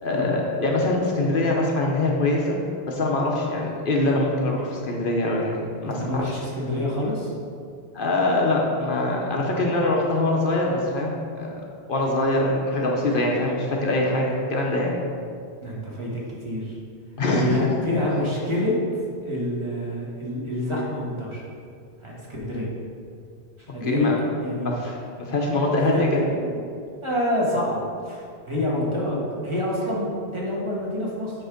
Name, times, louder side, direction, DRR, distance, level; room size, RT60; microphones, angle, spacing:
voice 1, 0.0-2.6 2.9-6.3 7.9-11.5 11.9-15.0 17.2-17.5 23.8-24.2 24.6-26.3, left 2 dB, 55° left, -1 dB, 1.0 m, -23 dB
voice 2, 5.8-7.3 15.6-16.7 17.4-18.7 19.2-21.4 22.0-22.7 23.6-24.1 24.4-24.7 25.7-26.6 27.0-31.3, left 1 dB, 25° right, -5 dB, 1.5 m, -27 dB
7.9 x 3.5 x 5.1 m, 2.3 s
omnidirectional pair, 1.1 m